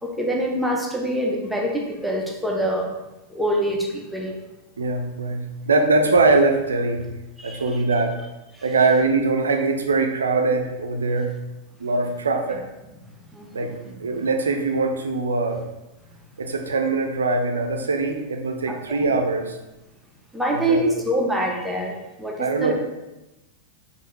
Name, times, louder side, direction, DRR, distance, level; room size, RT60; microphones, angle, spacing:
voice 1, 0.0-3.0 3.3-4.4 7.4-7.8 8.5-8.6 13.3-13.7 18.7-19.0 20.3-22.7, right 1 dB, ahead, -1 dB, 0.7 m, -25 dB
voice 2, 4.8-7.1 7.4-8.1 8.6-11.4 11.8-12.6 13.5-15.6 16.4-19.6 20.5-21.0 22.4-22.7, right 3 dB, 70° right, 5 dB, 0.5 m, -22 dB
5.4 x 2.6 x 3.1 m, 0.97 s
figure-of-eight pair, 90°, 0 cm